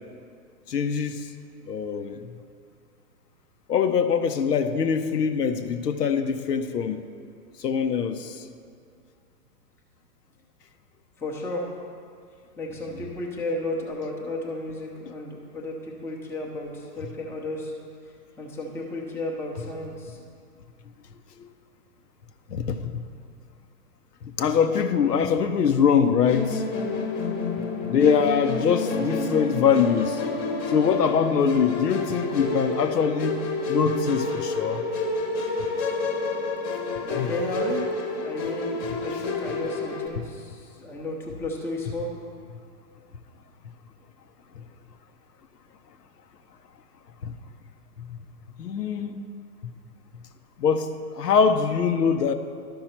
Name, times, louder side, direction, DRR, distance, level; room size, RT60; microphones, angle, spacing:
voice 1, 0.7-1.3 1.7-2.3 3.7-7.0 7.6-8.5 21.4-21.5 22.5-23.0 24.2-26.6 27.9-30.2 30.7-34.8 37.2-37.3 44.6-44.7 47.2-47.4 48.0-48.2 48.6-49.2 49.6-49.7 50.6-52.3, left 6 dB, 90° left, 8 dB, 0.8 m, -23 dB
voice 2, 11.2-11.7 12.6-17.7 18.4-20.2 37.0-37.8 38.1-42.1, left 1 dB, 5° left, -2 dB, 0.7 m, -33 dB
Musical instrument, 26.3-40.1, left 3 dB, 30° left, 1.0 m, -29 dB
12.0 x 5.5 x 4.3 m, 2.2 s
hypercardioid pair, 125°, 47 cm